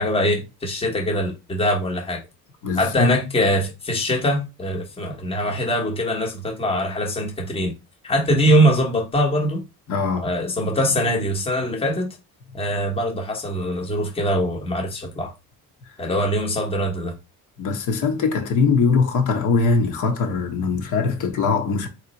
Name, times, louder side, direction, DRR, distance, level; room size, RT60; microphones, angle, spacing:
voice 1, 0.0-2.2 2.7-7.7 8.0-9.6 10.2-12.1 12.5-15.3 16.0-17.1, equal, 15° left, 1.1 m, -22 dB
voice 2, 2.6-3.1 9.9-10.3 17.6-21.9, left 4 dB, 55° left, 1.3 m, -21 dB
3.6 x 3.1 x 4.1 m
cardioid pair, 125°, 36 cm